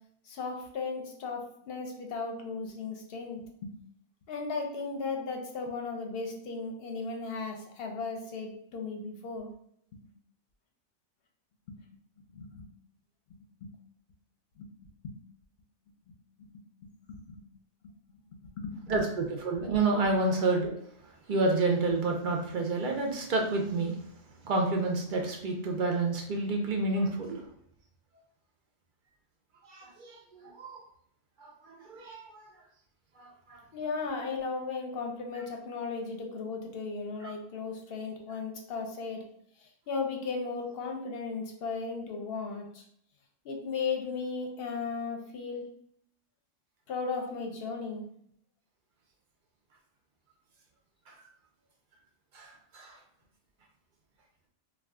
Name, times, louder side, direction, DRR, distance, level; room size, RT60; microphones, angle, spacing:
voice 1, 0.3-3.7 4.3-9.5 11.7-11.8 12.3-12.7 13.3-13.7 14.6-14.7 15.0-15.1 16.4-16.5 17.1-17.4 18.4-19.1 33.7-39.2 39.6-42.8 43.4-45.7 46.9-48.1, left 4 dB, 60° left, 2 dB, 0.7 m, -36 dB
voice 2, 18.9-20.7 21.3-23.9 24.4-27.4 29.7-30.8 31.4-32.4 33.2-33.6 51.1-51.2 52.3-52.9, right 3 dB, 60° right, 1 dB, 0.5 m, -29 dB
2.3 x 2.3 x 3.5 m, 0.68 s
omnidirectional pair, 1.3 m